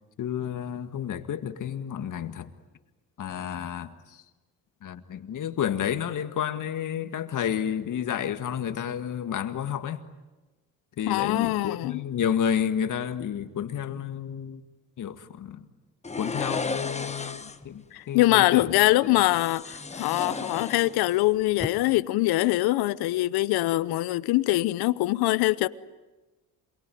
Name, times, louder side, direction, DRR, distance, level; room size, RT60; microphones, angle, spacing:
voice 1, 0.2-2.5 3.2-4.2 4.8-10.0 11.0-14.6 15.0-15.7 16.2-18.8 19.0-19.3, left 9 dB, 55° left, 2.0 m, -31 dB
voice 2, 11.1-12.0 17.9-25.7, left 18 dB, 80° left, 0.9 m, -23 dB
sound 1, 16.0-17.7 19.3-21.2 21.5-21.7, left 4 dB, 20° left, 1.3 m, -34 dB
27.0 x 22.5 x 9.4 m
cardioid pair, 90°, 37 cm